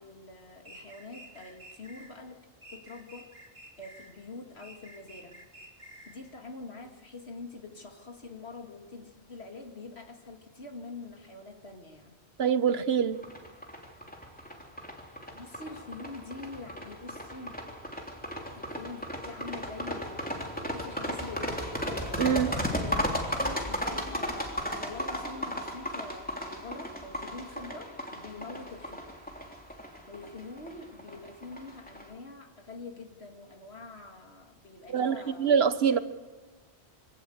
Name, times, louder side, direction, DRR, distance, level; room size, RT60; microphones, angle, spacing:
voice 1, 0.0-3.3 3.8-5.4 6.1-12.2 15.3-17.7 18.5-21.7 22.9-29.1 30.1-35.5 35.8-36.0, left 3 dB, 80° left, 3 dB, 2.9 m, -45 dB
sound 1, 0.6-2.1 2.6-4.2 4.6-6.2, right 1 dB, 55° right, 4.4 m, -50 dB
voice 2, 12.4-13.2 22.2-22.5 34.9-36.0, right 7 dB, 70° right, 13 dB, 1.3 m, -25 dB
sound 2, 13.2-32.0, equal, 10° left, 3.2 m, -35 dB
25.0 x 18.0 x 8.1 m, 1.3 s
omnidirectional pair, 1.1 m